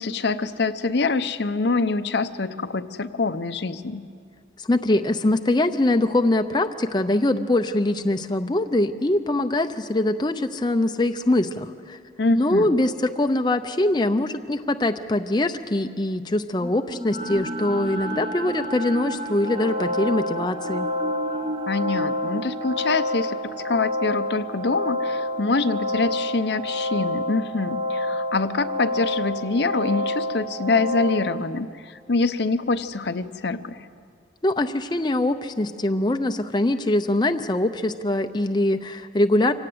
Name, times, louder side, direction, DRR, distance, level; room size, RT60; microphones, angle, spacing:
voice 1, 0.0-4.0 12.2-12.7 21.7-23.4 23.6-33.8, left 3 dB, 65° left, 11 dB, 0.7 m, -25 dB
voice 2, 4.6-12.0 12.3-20.9 34.4-39.5, left 1 dB, 25° left, 7 dB, 0.6 m, -23 dB
sound 1, 16.6-26.8, right 1 dB, 30° right, 1.1 m, -34 dB
sound 2, 19.4-31.1, left 1 dB, 45° right, 5.5 m, -28 dB
25.5 x 17.5 x 7.9 m, 2.2 s
head